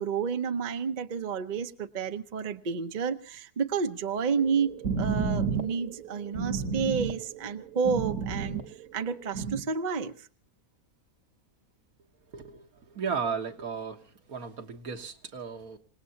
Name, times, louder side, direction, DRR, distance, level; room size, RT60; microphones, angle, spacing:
voice 1, 0.0-4.7 5.0-8.6 8.9-10.3, right 6 dB, 40° right, 8 dB, 0.8 m, -30 dB
sound 1, 4.4-9.6, right 5 dB, 60° right, 1.7 m, -32 dB
voice 2, 12.3-14.0 14.3-15.8, right 6 dB, 75° right, 4 dB, 1.9 m, -35 dB
27.5 x 18.0 x 2.8 m, 0.41 s
omnidirectional pair, 1.6 m